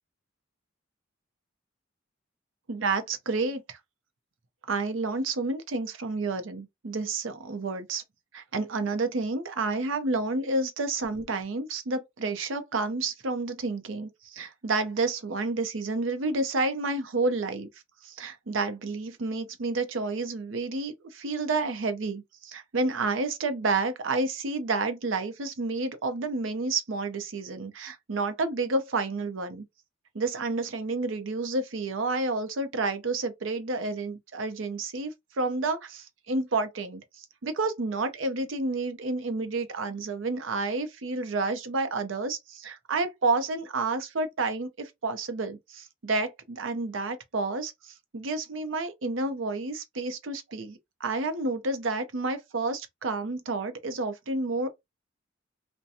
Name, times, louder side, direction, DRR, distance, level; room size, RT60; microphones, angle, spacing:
voice 1, 2.7-3.8 4.7-8.0 8.3-17.7 18.0-29.6 30.1-47.7 48.1-54.7, right 3 dB, 80° right, 0.6 m, -30 dB
2.7 x 2.2 x 2.5 m
head